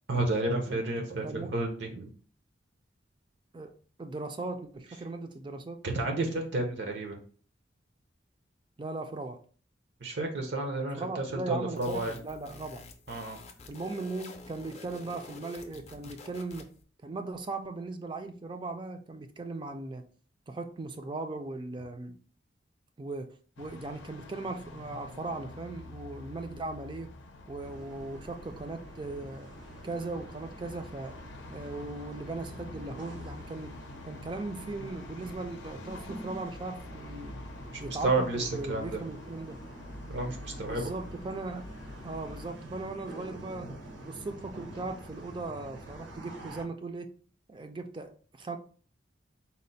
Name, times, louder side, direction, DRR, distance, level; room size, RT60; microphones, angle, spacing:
voice 1, 0.1-2.1 5.8-7.2 10.0-12.2 13.1-13.4 37.8-39.0 40.1-40.9, right 2 dB, 70° right, 0.6 m, -31 dB
voice 2, 3.5-5.8 8.8-9.4 11.0-12.8 13.7-16.7 17.0-20.1 20.5-22.2 23.0-27.1 27.5-29.5 29.8-31.2 31.5-33.7 34.1-37.4 37.8-39.6 40.6-41.7 42.0-43.7 44.0-47.1 47.5-48.6, right 3 dB, 25° right, 0.3 m, -38 dB
sound 1, 11.7-16.8, left 3 dB, 35° left, 0.5 m, -49 dB
sound 2, 23.6-42.5, left 2 dB, 85° left, 0.5 m, -47 dB
sound 3, 27.6-46.6, right 1 dB, 90° right, 1.1 m, -47 dB
4.2 x 2.1 x 3.9 m
head